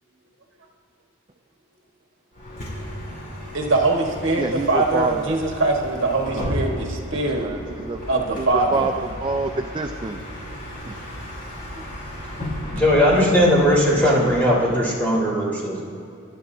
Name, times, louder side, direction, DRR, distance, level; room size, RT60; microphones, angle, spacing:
Bus, 2.3-14.8, equal, 40° left, 3.4 m, -34 dB
voice 1, 3.5-7.5 8.1-8.9 14.6-14.7, right 2 dB, 65° right, 1 dB, 1.4 m, -22 dB
voice 2, 4.4-5.4 6.3-6.5 7.4-8.0 8.4-8.9 9.2-10.2 10.8-10.9, right 3 dB, 25° right, 5 dB, 0.4 m, -27 dB
voice 3, 12.7-15.8, equal, 10° left, -6 dB, 3.3 m, -18 dB
24.5 x 11.5 x 2.7 m, 2.5 s
head